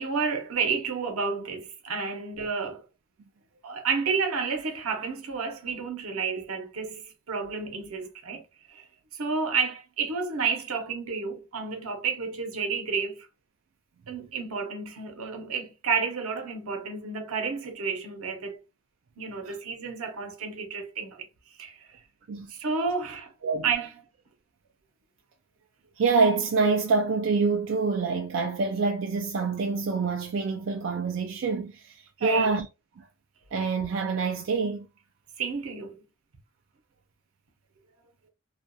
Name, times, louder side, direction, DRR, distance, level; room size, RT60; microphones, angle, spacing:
voice 1, 0.0-2.8 3.6-8.4 8.7-8.8 9.1-13.3 14.1-18.6 19.2-21.3 21.6-21.9 22.5-23.3 23.6-23.9 32.2-32.5 35.4-36.0, right 5 dB, 90° right, 0.7 m, -31 dB
voice 2, 26.0-32.7 33.0-33.1 33.5-34.9, right 4 dB, 60° right, 0.3 m, -26 dB
2.4 x 2.2 x 2.5 m
head